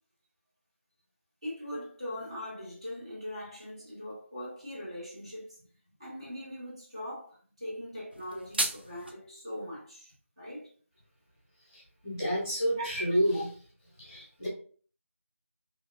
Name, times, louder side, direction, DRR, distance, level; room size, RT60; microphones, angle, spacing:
voice 1, 1.4-5.6 6.0-10.7 12.8-12.9 13.3-13.4, equal, 20° right, 0.7 m, -41 dB
sound 1, 8.1-9.1, right 1 dB, 45° right, 0.4 m, -33 dB
voice 2, 11.6-13.5 14.0-14.5, equal, 15° left, 1.1 m, -30 dB
2.8 x 2.7 x 2.4 m
figure-of-eight pair, 180°, 8 cm